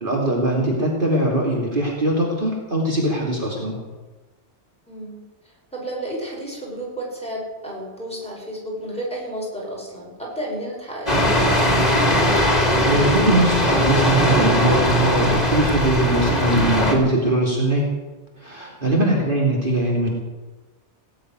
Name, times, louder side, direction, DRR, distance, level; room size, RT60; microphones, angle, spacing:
voice 1, 0.0-3.8 12.8-17.9 18.4-20.1, right 1 dB, 45° right, -3 dB, 2.9 m, -21 dB
voice 2, 4.9-5.2 5.7-11.8 19.1-19.4, right 1 dB, 5° left, -4 dB, 5.6 m, -32 dB
sound 1, 11.1-16.9, equal, 35° left, 2.9 m, -19 dB
18.0 x 8.0 x 9.4 m, 1.2 s
omnidirectional pair, 1.2 m